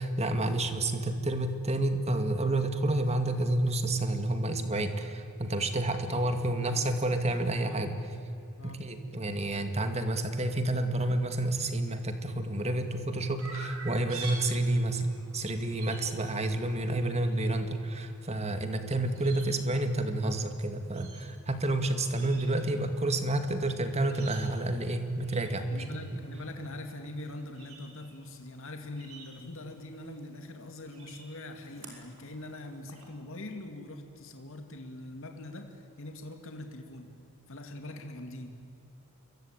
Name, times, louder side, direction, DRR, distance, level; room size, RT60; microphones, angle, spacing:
voice 1, 0.0-7.9 8.6-26.0, right 2 dB, 30° right, 7 dB, 2.1 m, -29 dB
voice 2, 6.1-7.9 8.6-8.9 25.7-37.1 37.5-38.5, left 1 dB, 60° left, 5 dB, 2.3 m, -43 dB
Chirp tweet, 13.4-33.0, right 3 dB, 70° right, 5.7 m, -50 dB
27.5 x 22.5 x 8.9 m, 2.8 s
head